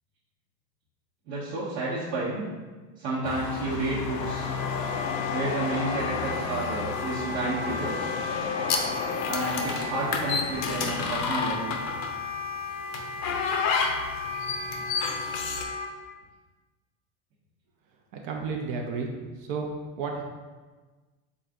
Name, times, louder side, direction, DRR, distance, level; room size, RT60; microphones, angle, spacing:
voice 1, 1.3-2.5 3.0-4.5 5.3-8.1 9.3-11.8, right 2 dB, 70° right, -9 dB, 1.1 m, -31 dB
sound 1, 3.2-11.2, left 6 dB, 85° left, 0.6 m, -33 dB
Wind instrument woodwind instrument, 4.2-15.9, left 3 dB, 10° left, 0.6 m, -36 dB
sound 2, 8.7-12.2 12.9-15.6, left 5 dB, 50° left, 0.6 m, -30 dB
voice 2, 18.1-19.1 19.4-19.7 20.0-20.2, right 5 dB, 55° right, 1 dB, 0.7 m, -32 dB
4.1 x 3.6 x 2.5 m, 1.3 s
hypercardioid pair, 90°, 48 cm